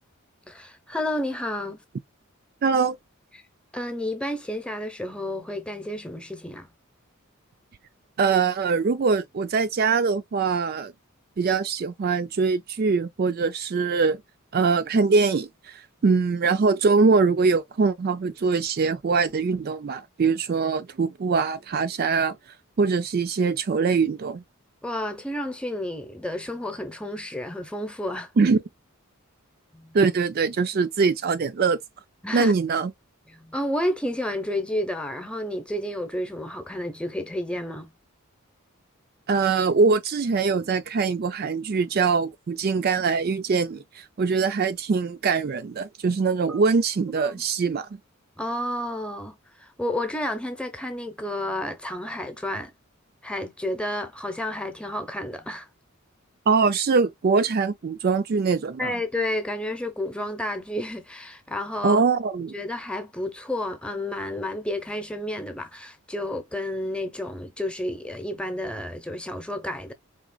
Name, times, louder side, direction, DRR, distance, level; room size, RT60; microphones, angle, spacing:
voice 1, 0.5-1.8 3.3-3.4 3.7-6.7 24.8-28.3 29.7-30.0 32.2-32.5 33.3-37.9 46.5-46.6 47.2-47.4 48.4-52.7 53.2-55.7 58.8-62.0 62.5-69.9, left 1 dB, 5° left, 0.8 m, -31 dB
voice 2, 2.6-3.0 8.2-10.9 11.4-14.2 14.5-22.4 22.8-24.4 28.4-28.6 29.9-31.8 32.3-32.9 39.3-47.9 56.5-58.9 61.8-62.5, right 4 dB, 45° right, 0.4 m, -23 dB
4.9 x 3.3 x 2.2 m
head